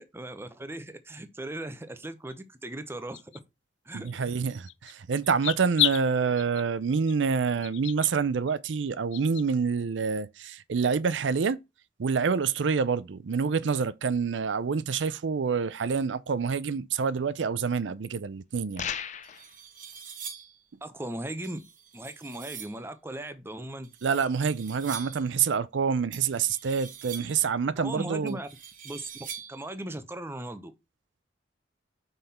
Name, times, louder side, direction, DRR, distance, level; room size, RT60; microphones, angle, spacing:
voice 1, 0.0-3.3 3.9-4.3 20.8-21.6 21.9-23.9 27.7-28.5 28.8-29.1 29.5-30.7, right 1 dB, 15° right, 0.8 m, -38 dB
sound 1, 2.3-2.4 3.1-3.4 4.1-4.2 4.7-4.9 5.2-6.0 6.4-6.6 7.1-7.2 7.6-8.1 8.5-8.6 9.1-9.4, left 15 dB, 85° left, 0.4 m, -30 dB
voice 2, 3.9-11.6 12.0-18.9 24.0-28.4, right 5 dB, 85° right, 0.5 m, -27 dB
sound 2, 18.7-18.8 19.2-20.6 21.4-22.8 23.8-25.3 26.1-27.5 28.3-29.7, right 7 dB, 50° right, 1.5 m, -44 dB
sound 3, 18.8-19.5, left 8 dB, 40° left, 0.6 m, -34 dB
5.7 x 5.6 x 4.3 m
head